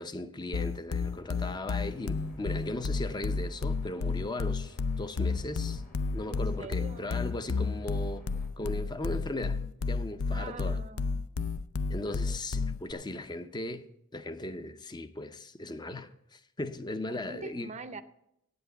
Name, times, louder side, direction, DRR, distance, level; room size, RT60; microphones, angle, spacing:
voice 1, 0.0-5.8 6.1-8.2 8.6-9.6 9.9-10.8 11.9-13.9 14.1-17.7, left 1 dB, 20° left, 0.5 m, -37 dB
sound 1, 0.5-12.9, left 4 dB, 75° left, 0.5 m, -31 dB
sound 2, 0.9-8.5, left 1 dB, 35° left, 1.4 m, -53 dB
voice 2, 6.3-7.2 10.3-11.3 17.1-18.0, right 3 dB, 30° right, 0.5 m, -44 dB
8.8 x 7.9 x 7.9 m
head